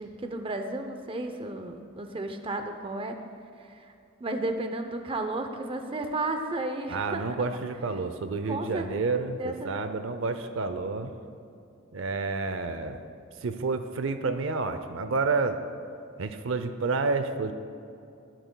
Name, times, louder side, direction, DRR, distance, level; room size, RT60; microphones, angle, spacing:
voice 1, 0.0-3.2 3.6-3.9 4.2-7.2 8.5-8.9 9.4-9.7, right 2 dB, 25° right, 6 dB, 0.6 m, -33 dB
voice 2, 6.9-11.1 11.9-13.0 13.4-15.6 16.2-17.5, right 3 dB, 70° right, 9 dB, 0.5 m, -29 dB
19.5 x 9.0 x 2.2 m, 2.5 s
head